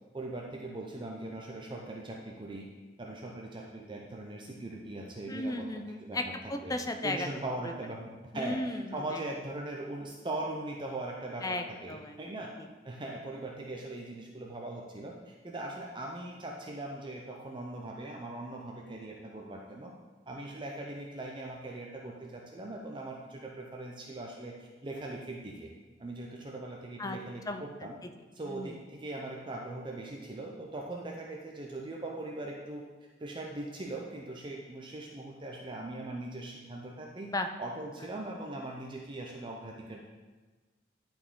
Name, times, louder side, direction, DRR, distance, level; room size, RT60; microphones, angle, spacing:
voice 1, 0.1-2.7 3.0-5.7 6.0-6.2 6.6-6.8 7.0-12.5 12.8-19.9 20.3-25.7 26.0-28.0 28.3-32.8 33.2-37.3 37.6-40.0, right 2 dB, 25° right, 0 dB, 0.6 m, -40 dB
voice 2, 5.3-7.3 7.6-7.7 8.3-9.2 11.4-12.2 12.6-12.7 27.0-27.2 27.5-27.9 28.4-28.8 37.3-37.5, left 2 dB, 20° left, 7 dB, 0.5 m, -35 dB
11.0 x 4.4 x 3.7 m, 1.3 s
head